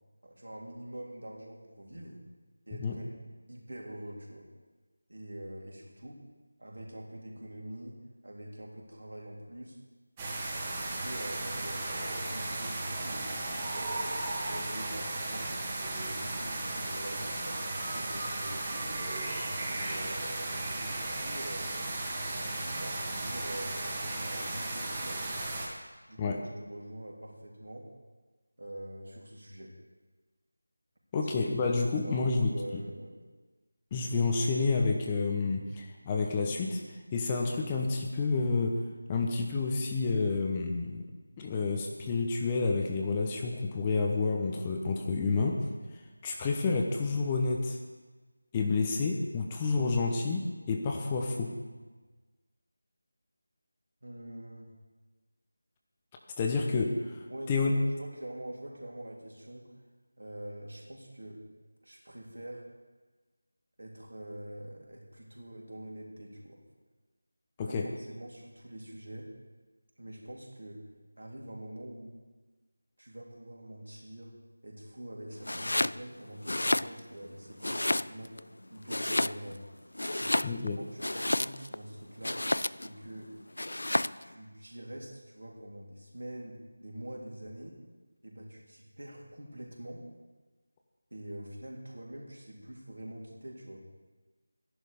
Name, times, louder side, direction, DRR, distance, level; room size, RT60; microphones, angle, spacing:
voice 1, 0.2-2.2 2.7-3.1 3.5-4.5 5.1-6.2 6.6-8.0 8.2-9.8 10.8-11.8 12.2-13.9 14.4-15.6 15.9-19.0 19.7-21.7 22.2-25.4 26.1-27.9 28.6-29.8 31.2-31.3 31.8-33.2 54.0-54.7 57.3-59.8 60.2-61.4 61.8-62.7 63.8-66.6 67.7-69.3 70.0-70.8 71.2-72.2 73.0-74.3 74.6-78.4 78.7-79.6 80.1-82.5 82.8-83.3 84.2-87.8 88.2-90.1 91.1-93.9, right 1 dB, 65° right, -2 dB, 3.5 m, -45 dB
sound 1, 10.2-25.7, right 2 dB, 15° right, 1.7 m, -35 dB
voice 2, 31.1-32.8 33.9-36.8 37.1-38.8 39.1-41.0 41.4-45.7 45.9-47.8 48.5-51.5 56.4-57.7 67.6-67.9 80.4-80.8, left 4 dB, 15° left, 1 dB, 0.9 m, -29 dB
Domestic sounds home sounds, 75.4-76.0 76.4-77.3 77.6-78.4 78.9-79.6 79.9-81.8 82.2-82.9 83.6-84.2, left 1 dB, 65° left, 0.3 m, -30 dB
13.5 x 11.0 x 5.1 m, 1.3 s
figure-of-eight pair, 165°, 0 cm